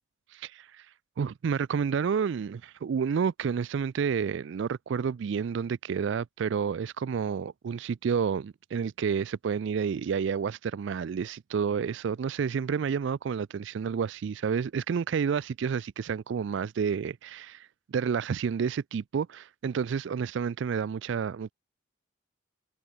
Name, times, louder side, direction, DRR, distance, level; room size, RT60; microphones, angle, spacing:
voice 1, 0.3-0.9 1.2-21.5, right 6 dB, 60° right, 0.3 m, -30 dB
head